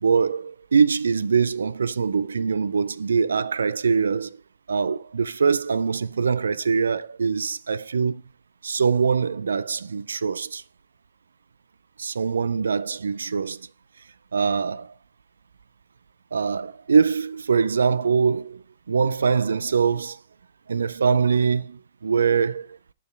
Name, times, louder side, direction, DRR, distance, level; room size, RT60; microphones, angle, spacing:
voice 1, 0.0-4.4 4.7-8.2 8.6-10.6 12.0-13.7 14.3-14.9 16.3-20.2 20.7-22.8, right 5 dB, 65° right, 0.4 m, -23 dB
9.4 x 4.6 x 3.3 m
figure-of-eight pair, 110°, 0 cm